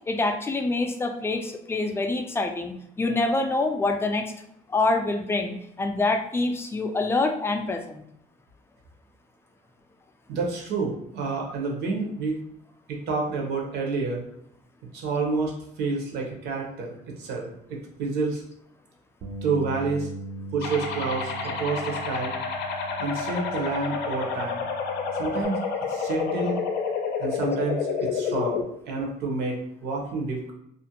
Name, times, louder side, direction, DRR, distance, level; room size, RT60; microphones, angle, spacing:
voice 1, 0.1-4.3 4.7-8.0, left 2 dB, 15° left, 4 dB, 0.3 m, -26 dB
voice 2, 10.3-12.4 12.9-14.2 14.9-18.4 19.4-20.1 20.5-22.3 23.0-24.6 25.2-25.6 25.9-26.6 27.2-30.5, right 4 dB, 75° right, 0 dB, 0.8 m, -29 dB
Bass guitar, 19.2-25.5, right 3 dB, 50° right, 0.5 m, -40 dB
sound 1, 20.6-28.6, left 5 dB, 85° left, 0.5 m, -29 dB
2.4 x 2.1 x 2.8 m, 0.75 s
cardioid pair, 110°, 17 cm